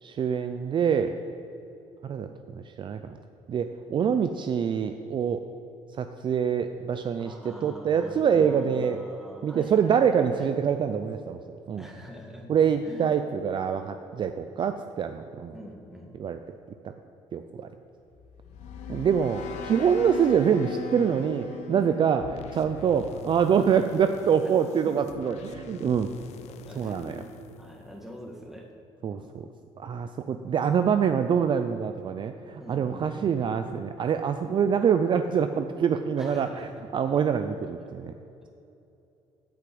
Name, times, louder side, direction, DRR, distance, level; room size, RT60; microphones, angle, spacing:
voice 1, 0.0-1.1 2.0-3.2 3.5-5.4 6.0-9.0 9.4-11.4 11.7-11.9 12.5-15.5 16.2-16.6 16.8-16.9 17.3-17.7 18.9-26.1 26.8-27.2 29.0-29.5 29.8-38.1, right 7 dB, 45° right, 8 dB, 0.5 m, -25 dB
voice 2, 7.2-10.5 11.8-12.5 12.8-13.1 15.5-16.2 24.4-24.5 25.4-25.5 26.7-27.3 27.6-28.7 29.0-29.5 32.6-33.5 36.2-36.7, equal, 5° right, 0 dB, 1.8 m, -44 dB
sound 1, 18.1-23.3, left 6 dB, 85° left, 1.0 m, -40 dB
sound 2, 22.2-28.4, left 7 dB, 70° left, 0.6 m, -45 dB
8.6 x 5.9 x 7.8 m, 2.8 s
cardioid pair, 100°, 12 cm